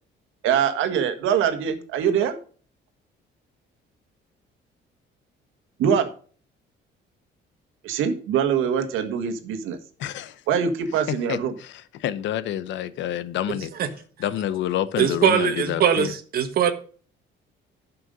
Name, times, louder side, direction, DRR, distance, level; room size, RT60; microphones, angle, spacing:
voice 1, 0.4-2.4 5.8-6.1 7.8-9.8 10.5-11.5, right 7 dB, 90° right, 1.7 m, -23 dB
voice 2, 10.0-10.4 11.3-13.7 14.2-16.1, left 11 dB, 70° left, 0.9 m, -28 dB
voice 3, 15.0-16.7, right 8 dB, 50° right, 1.5 m, -21 dB
11.5 x 5.9 x 5.3 m
cardioid pair, 165°, 20 cm